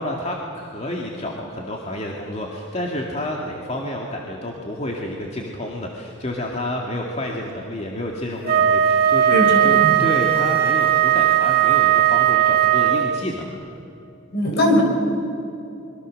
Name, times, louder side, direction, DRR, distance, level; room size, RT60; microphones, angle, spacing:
voice 1, 0.0-13.5, left 1 dB, 35° left, -1 dB, 2.2 m, -29 dB
Wind instrument woodwind instrument, 8.4-13.3, right 10 dB, 50° right, 1.9 m, -17 dB
voice 2, 9.3-10.1 14.3-14.8, left 1 dB, 55° left, 3 dB, 4.9 m, -20 dB
26.5 x 23.0 x 6.6 m, 2.8 s
head